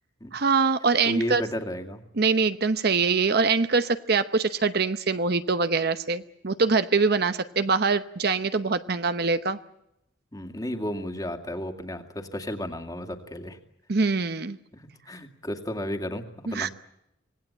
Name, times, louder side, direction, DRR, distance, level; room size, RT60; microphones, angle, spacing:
voice 1, 0.3-1.4 2.2-9.6 13.9-14.6 16.5-16.7, right 4 dB, 55° right, 11 dB, 0.9 m, -24 dB
voice 2, 1.1-2.0 10.3-13.6 14.7-16.7, equal, 20° left, 6 dB, 2.3 m, -33 dB
26.0 x 19.0 x 8.8 m, 0.83 s
head